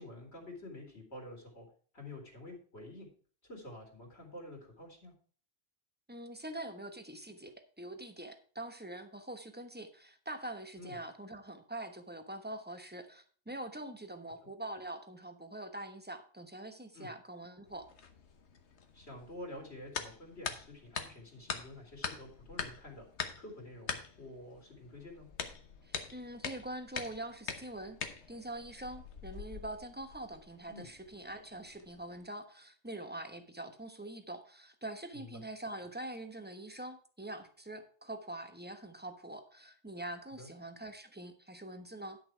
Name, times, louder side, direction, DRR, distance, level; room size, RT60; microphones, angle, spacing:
voice 1, 0.0-1.7 1.9-3.1 3.4-5.1 10.8-11.0 16.9-17.1 18.9-23.1 23.4-25.3 30.7-30.9 35.1-35.4 40.4-40.5, left 1 dB, 75° left, 1 dB, 3.2 m, -49 dB
voice 2, 6.1-17.9 25.8-28.0 28.3-42.2, right 1 dB, 10° right, 7 dB, 1.0 m, -44 dB
sound 1, 17.7-32.3, left 6 dB, 90° left, 1.4 m, -44 dB
11.0 x 6.7 x 4.6 m, 0.43 s
omnidirectional pair, 1.1 m